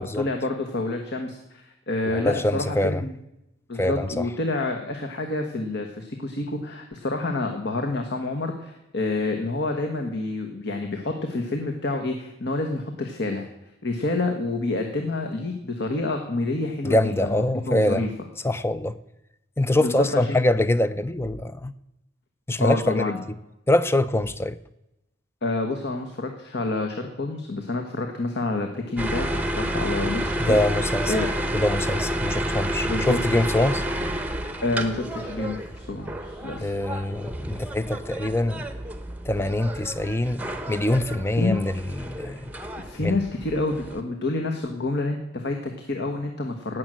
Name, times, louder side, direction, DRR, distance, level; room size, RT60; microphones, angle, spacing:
voice 1, 0.0-3.1 3.7-13.5 13.8-18.1 19.8-20.4 22.6-23.2 25.4-30.6 31.1-31.3 32.8-33.2 34.6-36.7 41.4-41.6 42.8-46.8, left 2 dB, 55° left, 4 dB, 1.3 m, -28 dB
voice 2, 2.1-3.0 3.7-4.3 16.8-18.1 18.4-19.0 19.6-21.7 22.5-23.1 23.7-24.6 30.4-31.1 31.5-33.8 36.6-38.6 39.2-42.5 43.0-43.2, left 1 dB, 10° left, 14 dB, 0.5 m, -24 dB
sound 1, 29.0-44.0, right 1 dB, 5° right, 0.8 m, -30 dB
17.0 x 6.3 x 7.6 m, 0.91 s
head